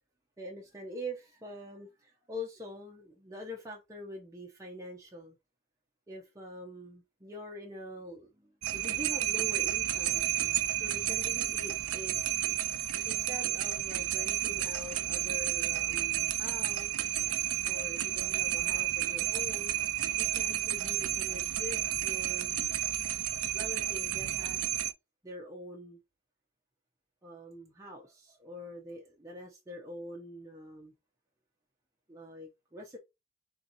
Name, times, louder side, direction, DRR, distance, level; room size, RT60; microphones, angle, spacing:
voice 1, 0.4-5.4 6.1-12.4 13.1-17.1 17.6-19.7 20.2-22.6 23.5-24.8 25.2-26.0 27.2-30.9 32.1-33.0, left 1 dB, 15° right, 0.7 m, -45 dB
sound 1, 8.6-24.9, right 13 dB, 80° right, 0.4 m, -31 dB
3.6 x 2.8 x 4.0 m
head